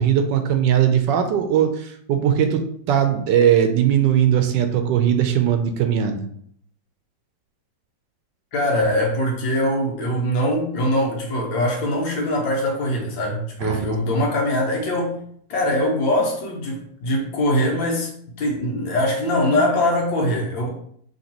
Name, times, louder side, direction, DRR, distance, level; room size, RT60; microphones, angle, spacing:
voice 1, 0.0-6.3 13.6-14.2, right 9 dB, 75° right, 7 dB, 1.2 m, -19 dB
voice 2, 8.5-15.2 15.5-18.1 18.4-20.7, left 1 dB, 80° left, 0 dB, 1.7 m, -22 dB
5.8 x 3.0 x 2.9 m, 0.65 s
omnidirectional pair, 2.1 m